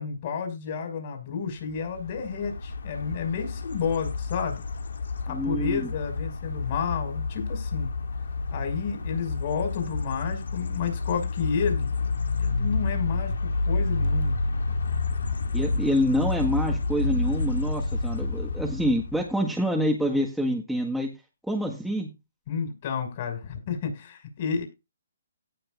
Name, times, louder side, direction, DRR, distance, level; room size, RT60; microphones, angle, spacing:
voice 1, 0.0-4.6 5.3-7.9 8.5-12.0 12.4-14.4 22.5-24.6, left 6 dB, 40° left, 5 dB, 5.7 m, -31 dB
sound 1, 1.7-19.3, left 3 dB, 80° left, 2.2 m, -29 dB
voice 2, 5.3-5.9 15.5-21.1 21.5-22.1, equal, ahead, -1 dB, 1.6 m, -26 dB
17.5 x 6.5 x 2.5 m, 0.26 s
hypercardioid pair, 150°, 0 cm